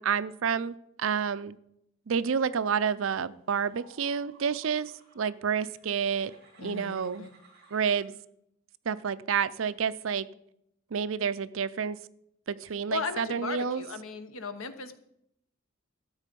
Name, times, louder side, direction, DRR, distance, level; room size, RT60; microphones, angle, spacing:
voice 1, 0.0-1.6 2.1-6.3 6.6-7.2 7.7-8.1 8.9-10.3 10.9-12.0 12.5-13.8, right 6 dB, 70° right, 15 dB, 0.5 m, -29 dB
sound 1, 3.6-8.1, right 3 dB, 50° right, 3.3 m, -58 dB
voice 2, 6.6-7.3 12.9-15.0, left 5 dB, 85° left, 10 dB, 1.1 m, -36 dB
13.0 x 8.2 x 5.3 m, 0.78 s
head